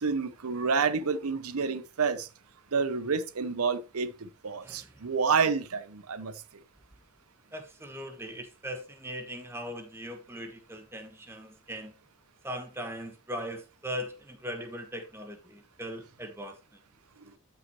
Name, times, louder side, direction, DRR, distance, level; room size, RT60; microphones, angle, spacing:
voice 1, 0.0-2.3 2.7-6.3, right 5 dB, 90° right, 0.8 m, -29 dB
voice 2, 7.5-11.9 12.4-16.6, equal, 10° right, 1.2 m, -39 dB
12.5 x 5.8 x 3.1 m
head